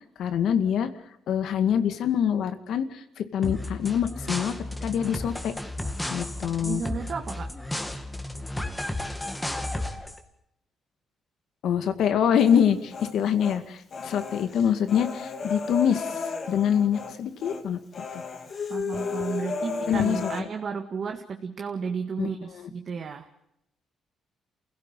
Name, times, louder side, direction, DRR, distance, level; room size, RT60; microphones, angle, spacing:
voice 1, 0.2-0.9 1.3-4.5 4.8-5.5 6.1-6.8 11.6-17.8 18.1-18.2 19.9-20.5 22.2-22.3 22.6-22.7, left 8 dB, 75° left, 9 dB, 2.1 m, -25 dB
sound 1, 3.4-10.2, left 1 dB, 10° left, 2.3 m, -33 dB
voice 2, 6.6-7.5 18.7-23.3, right 5 dB, 50° right, 3 dB, 1.8 m, -33 dB
Human voice, 12.4-13.6 13.9-17.1 17.4-17.6 17.9-20.4, left 4 dB, 50° left, 2.8 m, -34 dB
28.5 x 17.0 x 7.5 m, 0.80 s
cardioid pair, 90°, 0 cm